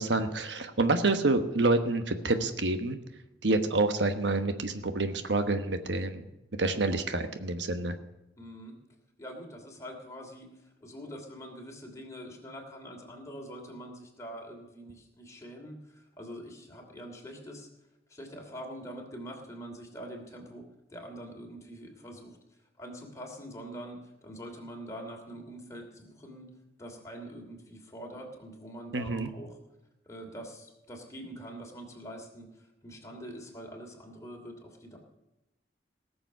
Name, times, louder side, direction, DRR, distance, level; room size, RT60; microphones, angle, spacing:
voice 1, 0.0-3.0 3.4-6.2 6.6-8.0 28.9-29.3, right 2 dB, 85° right, 8 dB, 1.2 m, -28 dB
voice 2, 8.4-8.8 9.2-17.7 18.1-22.4 22.8-26.5 26.8-29.6 30.0-35.0, equal, 20° left, 1 dB, 2.9 m, -44 dB
18.0 x 7.0 x 6.7 m, 0.93 s
head